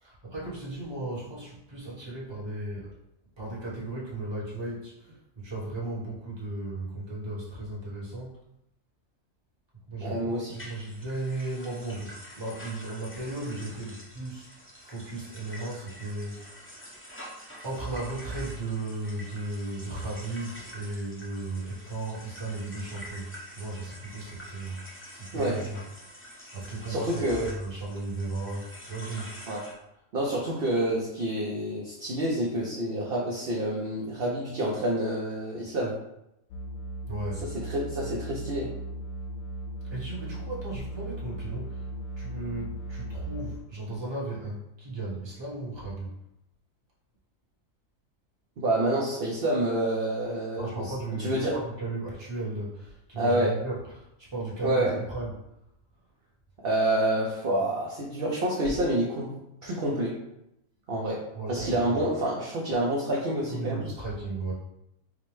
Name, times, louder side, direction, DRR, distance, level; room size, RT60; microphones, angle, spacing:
voice 1, 0.0-2.9 3.4-8.4 9.9-17.0 17.6-25.8 26.5-29.3 37.1-37.4 39.9-41.8 42.2-46.1 50.6-55.4 61.3-61.8 63.5-64.5, right 2 dB, 20° right, -6 dB, 1.0 m, -36 dB
voice 2, 10.0-10.5 25.3-25.6 26.9-27.5 29.5-29.6 30.1-35.9 37.4-38.7 48.6-50.9 51.2-51.5 53.2-53.5 54.6-54.9 56.6-59.3 59.6-60.2 60.9-61.2 61.5-63.9, right 1 dB, 55° right, -4 dB, 0.7 m, -28 dB
sound 1, 10.5-29.7, equal, 15° left, 0.4 m, -47 dB
sound 2, 36.5-43.6, right 1 dB, 65° left, 0.6 m, -37 dB
5.0 x 2.1 x 3.1 m, 0.83 s
omnidirectional pair, 1.5 m